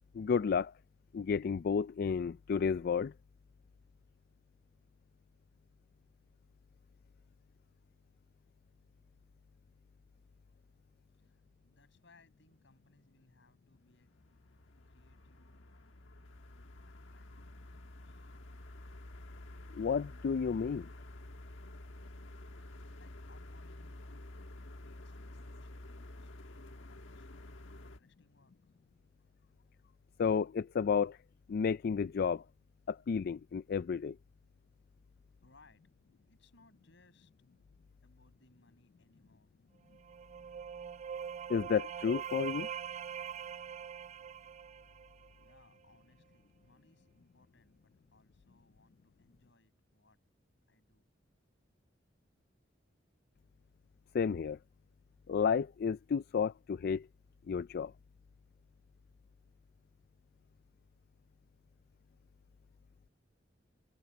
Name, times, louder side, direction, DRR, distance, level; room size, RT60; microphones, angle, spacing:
voice 1, 0.1-0.7 1.1-3.1 19.7-20.9 30.2-31.2 31.5-32.4 32.9-34.2 41.5-42.7 54.1-54.6 55.3-57.1 57.5-57.9, left 6 dB, 50° left, 0.3 m, -32 dB
voice 2, 11.1-14.1 14.9-15.7 16.4-18.3 22.6-28.8 35.4-35.8 36.3-37.3 38.0-39.5 45.3-50.2 50.7-51.1, left 2 dB, 70° left, 7.6 m, -67 dB
sound 1, 14.0-28.0, left 1 dB, 85° left, 1.4 m, -50 dB
sound 2, 39.9-45.6, right 8 dB, 35° right, 0.3 m, -43 dB
head